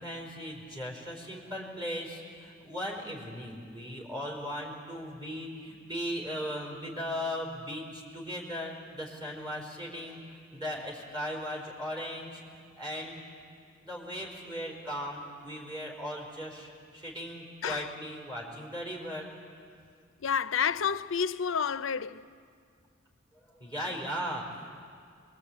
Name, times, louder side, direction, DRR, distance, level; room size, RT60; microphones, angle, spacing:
voice 1, 0.0-10.2 10.5-13.2 13.9-19.3 23.6-24.8, equal, 20° right, 4.8 m, -38 dB
voice 2, 17.6-17.9 20.2-22.3, left 7 dB, 70° left, 0.6 m, -30 dB
24.0 x 22.5 x 8.7 m
head